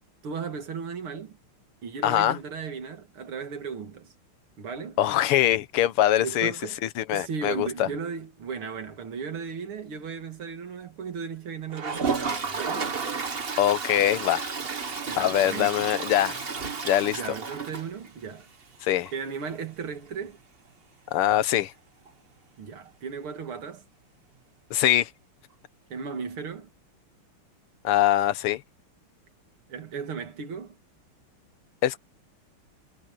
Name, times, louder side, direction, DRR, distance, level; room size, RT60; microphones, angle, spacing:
voice 1, 0.2-1.4 1.8-4.1 4.6-5.0 6.2-6.8 7.1-12.9 15.1-15.9 17.1-18.4 19.1-20.4 22.6-23.8 25.9-26.7 29.7-30.7, right 6 dB, 70° right, 3.0 m, -36 dB
voice 2, 2.0-2.4 5.0-6.5 7.0-7.9 13.6-14.5 15.2-16.4 16.8-17.3 18.8-19.1 21.1-21.7 24.7-25.1 27.8-28.6 31.8-32.0, left 12 dB, 85° left, 1.8 m, -23 dB
Toilet flush, 11.7-18.4 18.8-18.9 19.1-19.2 19.4-19.5 22.1-22.2 23.5-23.6, right 5 dB, 30° right, 1.2 m, -32 dB
omnidirectional pair, 2.4 m